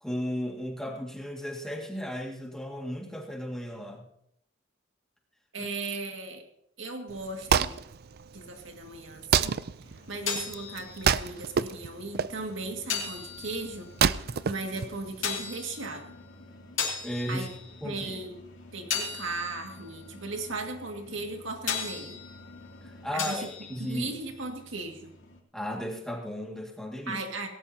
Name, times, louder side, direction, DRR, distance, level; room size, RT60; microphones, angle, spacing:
voice 1, 0.0-4.1 17.0-17.5 17.8-18.2 22.8-24.1 25.5-27.2, equal, 5° left, -1 dB, 2.1 m, -35 dB
voice 2, 5.5-6.4 6.8-7.7 8.3-9.6 10.1-13.9 14.1-16.0 17.3-17.5 17.8-18.3 18.7-22.2 23.1-25.1 27.1-27.5, right 3 dB, 75° right, 3 dB, 2.2 m, -37 dB
Wood, 7.1-15.4, right 7 dB, 50° right, 0.4 m, -29 dB
sound 1, 9.8-25.4, left 6 dB, 80° left, 2.7 m, -39 dB
18.0 x 17.5 x 2.9 m, 0.75 s
head